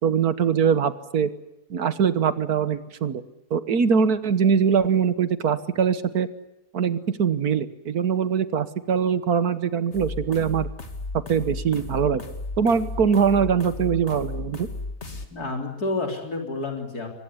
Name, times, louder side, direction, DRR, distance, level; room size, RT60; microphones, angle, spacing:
voice 1, 0.0-1.3 1.7-3.2 3.5-6.3 6.7-10.7 11.3-12.2 12.6-14.7, right 7 dB, 80° right, 13 dB, 1.8 m, -22 dB
sound 1, 9.9-15.3, left 2 dB, 45° left, 2.7 m, -34 dB
voice 2, 15.3-17.1, left 2 dB, 85° left, 3 dB, 4.1 m, -29 dB
24.0 x 19.5 x 10.0 m, 0.91 s
omnidirectional pair, 1.6 m